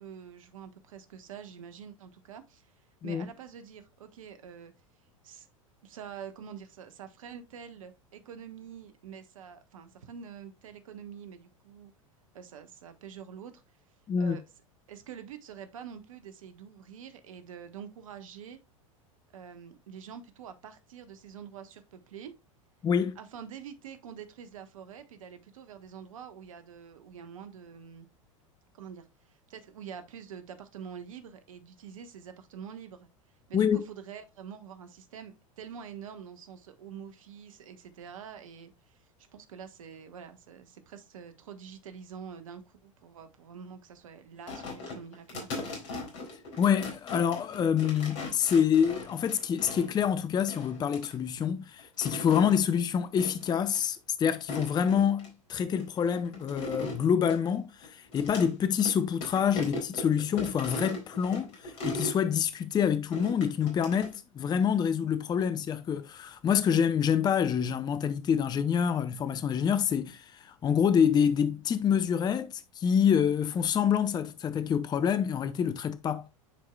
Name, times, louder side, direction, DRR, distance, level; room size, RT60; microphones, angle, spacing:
voice 1, 0.0-2.7 3.0-4.7 5.2-5.5 5.8-11.9 12.3-13.6 14.2-14.4 14.9-18.6 19.3-22.3 23.1-28.1 28.7-33.0 33.5-39.0 39.3-45.7, right 7 dB, 70° right, 1.3 m, -46 dB
voice 2, 22.8-23.2 33.5-33.8 46.6-76.3, left 8 dB, 25° left, 0.6 m, -27 dB
sound 1, 44.5-50.0 50.5-51.1 51.8-52.6 53.2-53.5 53.7-53.8 54.3-55.3 55.8-58.5 58.8-58.9 59.2-62.2 63.1-64.2, left 2 dB, 60° left, 3.9 m, -39 dB
10.0 x 4.7 x 2.3 m
hypercardioid pair, 85°, 18 cm